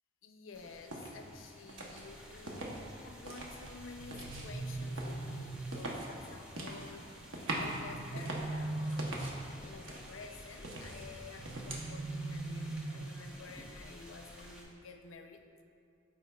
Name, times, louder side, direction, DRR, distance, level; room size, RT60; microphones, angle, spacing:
voice 1, 0.2-9.4 9.6-15.6, left 4 dB, 90° left, 6 dB, 0.5 m, -51 dB
sound 1, 0.5-14.6, equal, 5° right, 0.7 m, -53 dB
sound 2, 0.9-1.1 1.7-2.8 3.2-9.4 9.8-11.9, right 1 dB, 80° right, 0.9 m, -43 dB
sound 3, 4.0-5.9 7.6-9.6 11.4-13.3, right 2 dB, 45° right, 0.4 m, -40 dB
13.0 x 4.3 x 2.3 m, 2.4 s
head